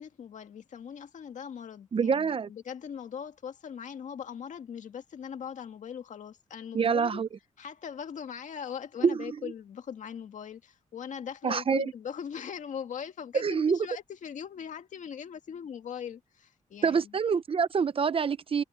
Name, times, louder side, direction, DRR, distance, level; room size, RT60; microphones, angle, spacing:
voice 1, 0.0-7.2 7.6-17.2, left 7 dB, 75° left, 1.9 m, -40 dB
voice 2, 1.9-2.5 6.7-7.3 9.0-9.2 11.4-11.9 13.3-13.8 16.8-18.6, right 6 dB, 45° right, 0.7 m, -26 dB
cardioid pair, 90°, 13 cm